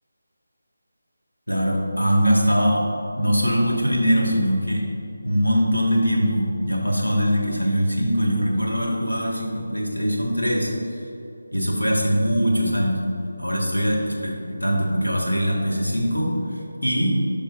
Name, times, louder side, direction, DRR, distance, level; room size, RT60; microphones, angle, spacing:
voice 1, 1.5-2.8 3.2-4.9 5.2-10.7 11.5-13.0 13.4-17.2, equal, 85° left, -3 dB, 1.6 m, -22 dB
10.5 x 6.1 x 2.5 m, 2.7 s
figure-of-eight pair, 160°, 0 cm